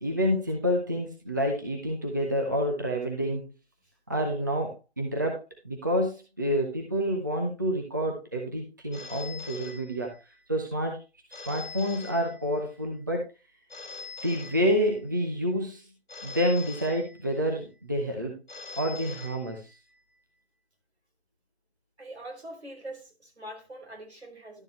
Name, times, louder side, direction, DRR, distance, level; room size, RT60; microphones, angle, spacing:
voice 1, 0.0-3.4 4.1-10.1 10.5-11.0 11.3-13.2 14.2-15.8 16.2-18.4 18.8-19.7, equal, 20° right, 0.8 m, -28 dB
Telephone, 8.9-10.4 11.3-12.8 13.7-15.2 16.1-17.6 18.5-20.0, left 4 dB, 45° left, 2.6 m, -44 dB
voice 2, 22.0-24.6, right 1 dB, 75° right, 3.9 m, -43 dB
12.0 x 6.7 x 3.1 m
figure-of-eight pair, 170°, 33 cm